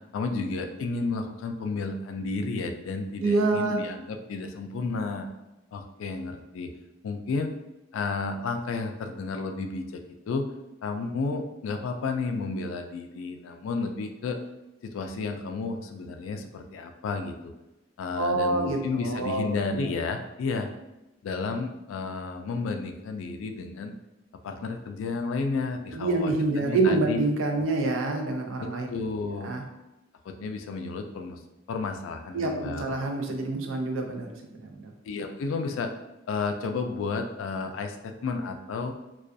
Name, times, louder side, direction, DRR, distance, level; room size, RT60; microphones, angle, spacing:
voice 1, 0.1-5.3 5.7-6.7 7.0-7.5 7.9-10.5 10.8-14.4 14.8-17.5 18.0-20.7 21.2-23.9 24.4-27.2 28.6-29.5 30.2-31.4 31.7-32.8 35.1-35.9 36.3-38.9, left 4 dB, 85° left, 5 dB, 0.3 m, -32 dB
voice 2, 3.2-3.8 18.2-18.8 19.0-19.5 19.8-19.9 25.9-28.9 29.3-29.6 32.3-34.9, right 3 dB, 85° right, 3 dB, 0.4 m, -27 dB
2.3 x 2.3 x 2.5 m, 0.98 s
head